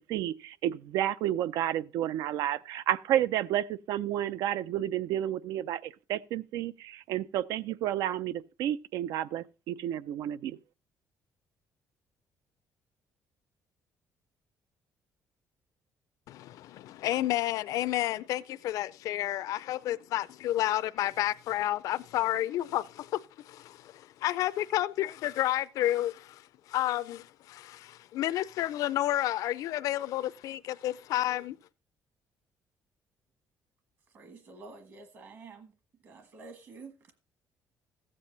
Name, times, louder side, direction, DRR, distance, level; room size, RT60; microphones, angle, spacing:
voice 1, 0.1-10.6, right 12 dB, 90° right, 0.5 m, -31 dB
voice 2, 16.3-31.6, left 13 dB, 70° left, 0.5 m, -31 dB
voice 3, 34.1-35.7 36.0-37.2, right 4 dB, 45° right, 1.4 m, -49 dB
14.5 x 7.6 x 3.9 m
cardioid pair, 160°, 6 cm